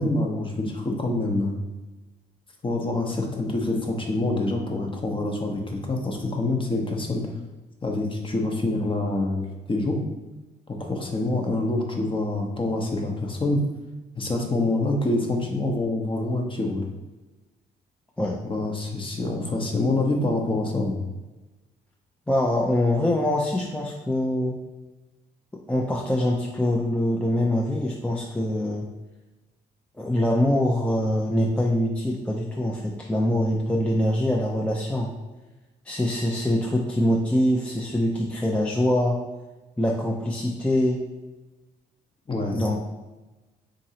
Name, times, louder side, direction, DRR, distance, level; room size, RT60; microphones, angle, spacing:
voice 1, 0.0-1.6 2.6-7.2 7.8-10.0 10.7-13.6 14.1-16.8 18.4-21.0 42.3-42.8, left 2 dB, 25° left, 1 dB, 0.8 m, -26 dB
voice 2, 22.3-24.6 25.7-28.9 30.0-35.1 35.9-39.2 39.8-41.0 42.5-42.8, left 1 dB, 5° left, -2 dB, 0.5 m, -24 dB
3.8 x 2.9 x 2.8 m, 1.1 s
supercardioid pair, 60°, 19 cm